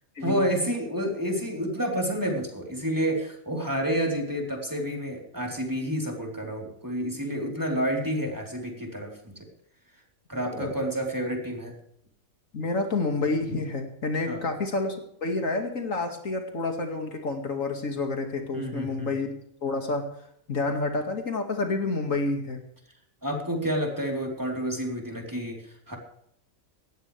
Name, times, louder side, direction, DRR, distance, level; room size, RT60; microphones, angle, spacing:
voice 1, 0.2-9.5 10.3-11.7 14.3-14.5 18.5-19.1 23.2-26.0, equal, 15° right, 0 dB, 3.8 m, -29 dB
voice 2, 12.5-19.3 19.6-20.1 20.5-22.6, left 3 dB, 70° left, 4 dB, 2.5 m, -29 dB
18.5 x 15.0 x 3.4 m, 0.72 s
omnidirectional pair, 1.4 m